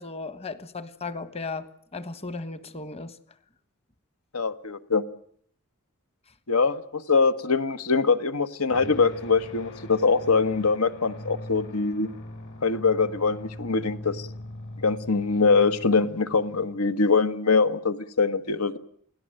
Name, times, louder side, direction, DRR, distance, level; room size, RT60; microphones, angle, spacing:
voice 1, 0.0-3.2, left 3 dB, 30° left, 1.3 m, -36 dB
voice 2, 4.3-5.0 6.5-12.1 12.6-14.3 14.8-18.8, left 4 dB, 80° left, 1.5 m, -23 dB
sound 1, 8.7-16.9, left 1 dB, 60° left, 4.0 m, -41 dB
28.5 x 17.5 x 7.8 m
head